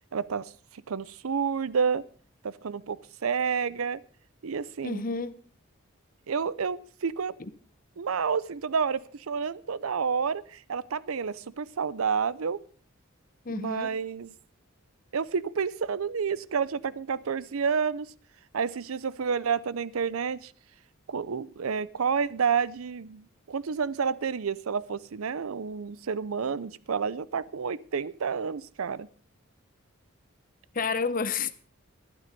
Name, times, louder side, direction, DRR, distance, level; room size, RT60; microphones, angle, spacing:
voice 1, 0.1-2.0 2.4-4.0 4.4-5.0 6.3-7.4 8.0-12.6 13.5-14.3 15.1-18.1 18.5-20.5 21.1-29.1, right 6 dB, 85° right, 0.6 m, -30 dB
voice 2, 4.8-5.4 7.4-7.5 13.4-14.0 30.7-31.5, left 4 dB, 40° left, 0.8 m, -30 dB
12.0 x 12.0 x 5.3 m
head